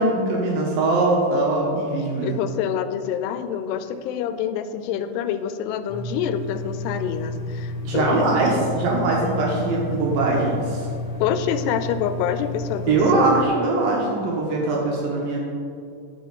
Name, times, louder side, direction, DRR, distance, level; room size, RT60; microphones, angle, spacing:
voice 1, 0.0-2.4 7.8-10.9 12.9-15.4, right 2 dB, 70° right, -2 dB, 2.6 m, -21 dB
voice 2, 2.2-8.5 11.2-13.5, left 9 dB, 90° left, 10 dB, 2.6 m, -27 dB
sound 1, 5.9-13.5, left 2 dB, 65° left, 2.0 m, -31 dB
12.5 x 5.4 x 4.0 m, 2.4 s
omnidirectional pair, 4.6 m